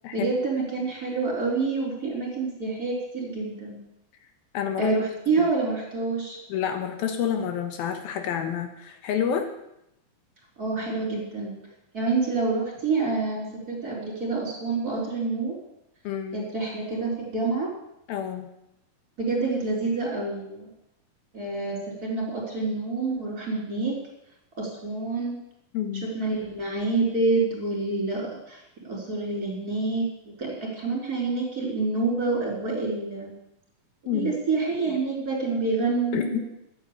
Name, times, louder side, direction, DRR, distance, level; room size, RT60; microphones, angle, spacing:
voice 1, 0.1-3.8 4.8-6.4 10.6-11.5 11.9-15.5 16.3-17.7 19.2-20.7 21.3-24.0 24.6-25.4 26.0-30.1 30.4-33.3 34.1-36.4, right 3 dB, 25° right, -3 dB, 4.4 m, -27 dB
voice 2, 4.5-4.9 6.5-9.5 16.0-16.5 18.1-18.5 25.7-26.1 34.1-34.4 36.1-36.4, left 8 dB, 80° left, 5 dB, 3.1 m, -28 dB
12.5 x 8.8 x 8.3 m, 0.82 s
omnidirectional pair, 4.3 m